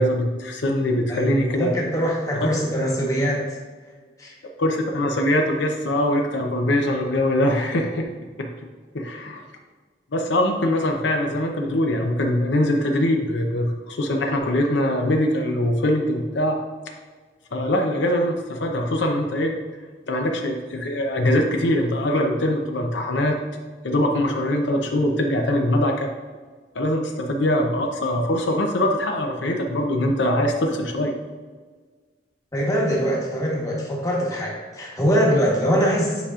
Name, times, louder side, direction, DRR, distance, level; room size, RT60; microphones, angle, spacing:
voice 1, 0.0-1.7 2.3-2.5 4.6-8.1 8.4-8.5 8.9-9.4 10.1-16.6 17.5-19.5 20.1-23.4 23.8-26.1 26.7-31.1, left 1 dB, 85° left, 3 dB, 0.7 m, -22 dB
voice 2, 1.1-3.4 4.2-4.3 32.5-36.3, equal, 20° left, -3 dB, 1.1 m, -23 dB
8.1 x 5.0 x 2.4 m, 1.5 s
head